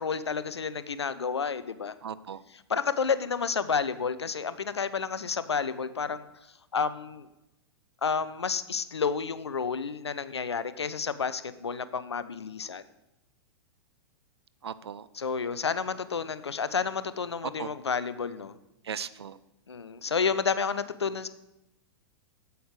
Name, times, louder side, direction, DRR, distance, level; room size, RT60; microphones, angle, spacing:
voice 1, 0.0-2.0 2.7-6.2 6.7-7.3 8.0-12.8 15.2-18.5 19.7-21.3, left 5 dB, 85° left, 14 dB, 0.6 m, -30 dB
voice 2, 2.0-2.4 14.6-15.1 17.4-17.7 18.8-19.4, right 8 dB, 80° right, 17 dB, 0.5 m, -37 dB
8.2 x 7.9 x 4.8 m, 0.91 s
hypercardioid pair, 105°, 14 cm